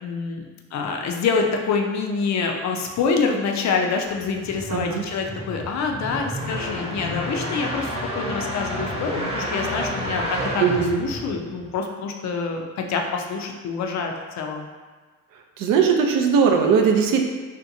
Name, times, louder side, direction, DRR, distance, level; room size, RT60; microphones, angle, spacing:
voice 1, 0.0-10.7 11.0-14.7, left 4 dB, 50° left, 2 dB, 0.4 m, -26 dB
sound 1, 4.1-11.7, equal, 15° right, 0.7 m, -30 dB
voice 2, 4.7-5.0 10.6-11.0 15.6-17.2, right 6 dB, 70° right, 3 dB, 0.5 m, -19 dB
2.7 x 2.2 x 2.6 m, 1.4 s
cardioid pair, 85°, 35 cm